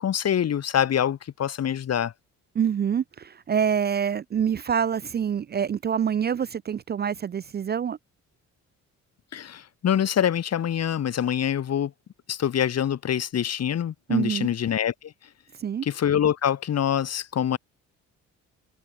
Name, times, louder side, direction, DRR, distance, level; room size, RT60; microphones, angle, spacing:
voice 1, 0.0-2.1 9.3-11.9 12.3-15.1 15.8-17.6, left 9 dB, 55° left, 2.3 m, -25 dB
voice 2, 2.6-8.0 14.1-14.5 15.6-15.9, right 8 dB, 35° right, 0.5 m, -26 dB
cardioid pair, 90°, 30 cm